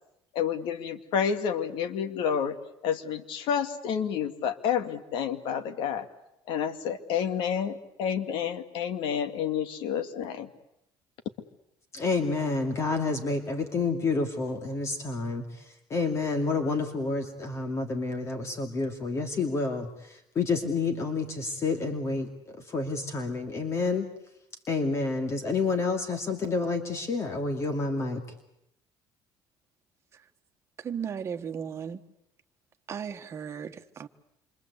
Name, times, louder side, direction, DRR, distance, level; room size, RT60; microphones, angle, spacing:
voice 1, 0.3-2.6 2.8-6.0 6.5-10.5, left 8 dB, 75° left, 9 dB, 2.2 m, -29 dB
voice 2, 11.9-15.4 15.9-22.3 22.7-24.1 24.7-28.2, left 3 dB, 35° left, 6 dB, 2.5 m, -29 dB
voice 3, 30.8-32.0 32.9-34.1, right 7 dB, 35° right, 6 dB, 1.6 m, -35 dB
27.5 x 24.5 x 8.3 m, 0.82 s
cardioid pair, 135°, 8 cm